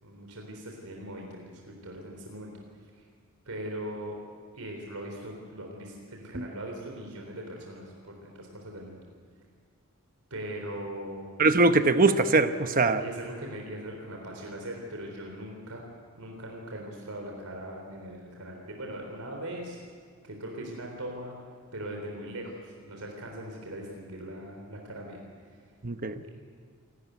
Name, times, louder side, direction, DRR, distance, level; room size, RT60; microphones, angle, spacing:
voice 1, 0.0-2.5 3.0-3.1 3.5-4.2 4.5-9.0 10.3-11.3 12.7-15.9 16.2-19.8 20.2-21.4 21.7-25.2 26.2-26.3, right 1 dB, 90° right, 1 dB, 3.8 m, -40 dB
voice 2, 11.4-13.0 25.8-26.2, right 3 dB, 40° right, 9 dB, 1.0 m, -22 dB
28.0 x 13.5 x 9.4 m, 2.1 s
head